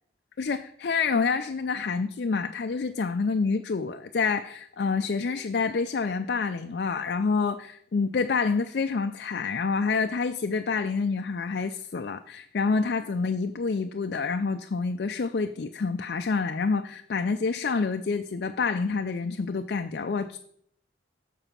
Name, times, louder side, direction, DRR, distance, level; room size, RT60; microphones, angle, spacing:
voice 1, 0.4-20.4, left 4 dB, 60° left, 7 dB, 0.4 m, -27 dB
7.0 x 6.7 x 5.7 m, 0.68 s
head